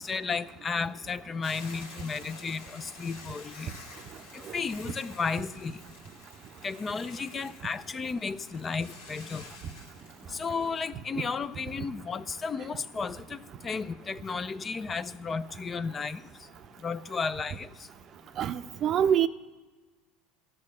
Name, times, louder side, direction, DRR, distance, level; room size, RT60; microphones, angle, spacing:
voice 1, 0.0-3.7 4.3-5.8 6.6-9.4 10.3-13.4 13.6-16.2 16.8-17.7, left 5 dB, 25° left, 15 dB, 0.4 m, -33 dB
Hiss / Boiling, 1.4-10.8, left 3 dB, 90° left, 1.9 m, -50 dB
voice 2, 18.4-19.3, right 9 dB, 45° right, 12 dB, 0.6 m, -25 dB
12.5 x 6.4 x 9.5 m, 1.3 s
hypercardioid pair, 95°, 0 cm